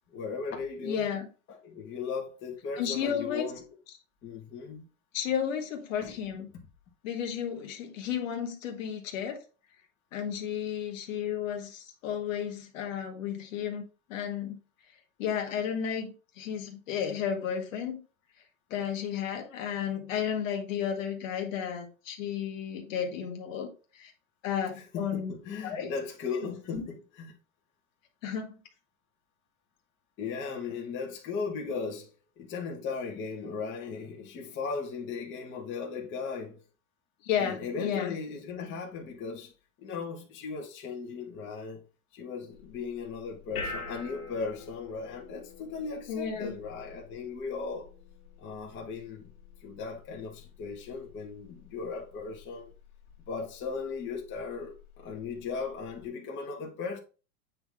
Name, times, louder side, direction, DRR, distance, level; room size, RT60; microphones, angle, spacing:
voice 1, 0.1-1.2 1.5-3.6 4.2-4.9 6.0-6.2 24.8-27.4 30.2-36.6 37.4-39.5 39.8-41.8 42.1-47.9 48.4-49.3 49.6-52.7 53.2-57.0, left 5 dB, 25° left, 1.8 m, -37 dB
voice 2, 0.8-1.3 2.8-3.5 5.1-6.5 7.0-9.4 10.1-13.8 14.1-14.6 15.2-18.0 18.7-24.1 24.4-25.3 25.6-25.9 26.7-26.8 28.2-28.6 37.2-38.2 46.1-46.6, left 8 dB, 60° left, 1.9 m, -33 dB
sound 1, 42.5-56.1, left 3 dB, 85° left, 2.6 m, -47 dB
8.7 x 4.0 x 3.6 m
supercardioid pair, 150°, 43 cm